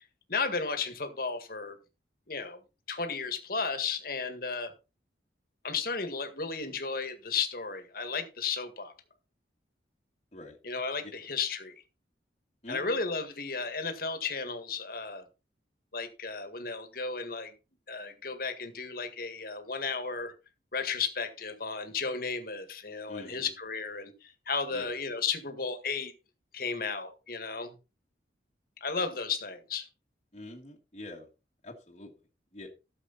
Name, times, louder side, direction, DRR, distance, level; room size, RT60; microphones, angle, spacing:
voice 1, 0.3-1.8 2.3-2.6 2.9-4.7 5.6-8.9 10.6-11.7 12.7-15.2 15.9-17.5 17.9-20.3 20.7-26.1 26.5-27.7 28.8-29.9, left 5 dB, 55° left, 8 dB, 1.9 m, -34 dB
voice 2, 12.6-13.0 23.1-23.5 24.7-25.0 30.3-31.3 31.6-32.7, left 1 dB, 35° left, -2 dB, 1.7 m, -45 dB
12.5 x 7.0 x 4.1 m, 0.30 s
head